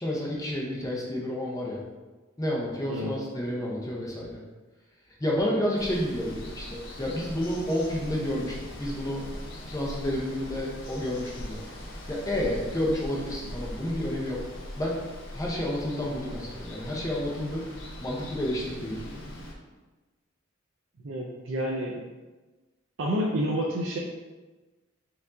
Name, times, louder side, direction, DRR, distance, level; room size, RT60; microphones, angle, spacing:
voice 1, 0.0-1.8 2.4-4.3 5.2-9.2 9.7-11.6 12.1-14.4 14.8-15.0 15.3-17.6 18.0-19.0, left 1 dB, 15° left, -3 dB, 0.7 m, -30 dB
Water, 5.8-19.5, left 1 dB, 65° left, 0.7 m, -41 dB
voice 2, 21.0-22.0 23.0-24.0, equal, 65° right, -2 dB, 0.5 m, -29 dB
4.6 x 2.6 x 3.6 m, 1.2 s
head